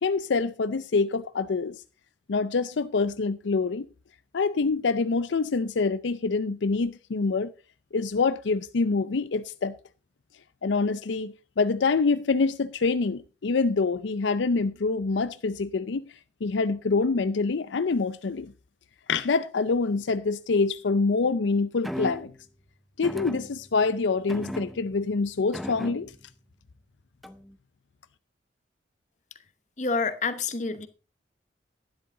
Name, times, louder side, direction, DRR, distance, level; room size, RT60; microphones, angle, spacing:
voice 1, 0.0-1.8 2.3-3.9 4.3-7.5 7.9-9.7 10.6-16.1 16.4-18.5 19.1-22.3 23.0-26.1, left 4 dB, 80° left, 0.5 m, -26 dB
sound 1, 21.8-22.4 23.0-23.9 24.3-25.1 25.5-26.3 27.2-27.5, equal, ahead, 0.6 m, -37 dB
voice 2, 29.8-30.9, left 4 dB, 40° left, 1.0 m, -28 dB
12.0 x 10.5 x 3.7 m
head